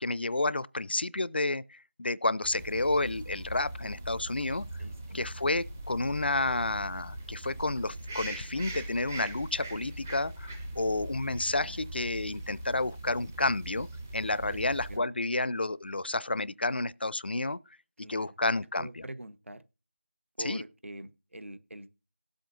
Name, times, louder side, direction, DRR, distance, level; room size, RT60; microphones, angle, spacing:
voice 1, 0.0-4.7 5.1-13.9 14.1-17.6 18.1-19.0 20.4-20.6, left 2 dB, 50° left, 0.4 m, -30 dB
sound 1, 2.4-15.0, right 1 dB, 10° right, 0.4 m, -41 dB
voice 2, 4.8-5.2 11.5-11.8 14.5-14.6 14.9-15.1 18.0-18.3 18.8-19.6 20.4-21.9, right 1 dB, 70° right, 1.0 m, -44 dB
18.0 x 7.8 x 2.5 m
figure-of-eight pair, 170°, 7 cm